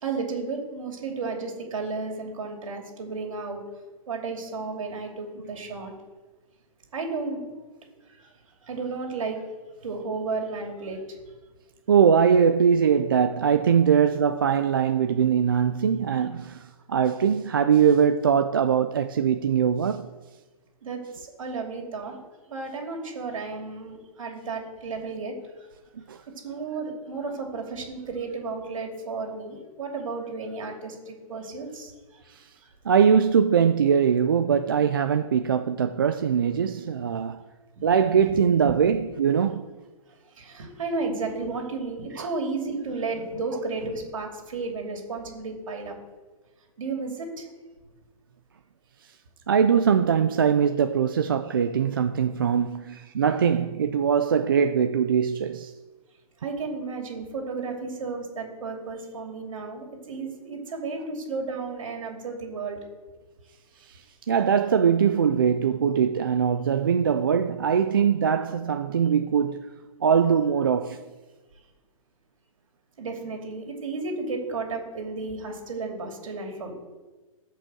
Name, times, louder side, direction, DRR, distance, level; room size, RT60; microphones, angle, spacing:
voice 1, 0.0-3.6 4.1-5.9 6.9-7.4 8.1-8.3 8.6-9.4 9.8-11.0 20.8-22.2 22.5-25.7 26.2-32.2 32.6-32.7 37.8-37.9 38.2-38.4 38.6-38.7 39.1-39.2 40.3-45.9 46.8-47.5 56.4-62.8 73.0-76.7, right 4 dB, 65° right, 2.8 m, -33 dB
voice 2, 11.9-20.1 26.0-26.2 32.3-32.5 32.9-37.4 37.8-39.7 42.2-42.3 49.5-55.7 63.9-69.7 70.0-71.0, right 7 dB, 40° right, 0.4 m, -22 dB
12.5 x 5.4 x 7.6 m
hypercardioid pair, 180°, 18 cm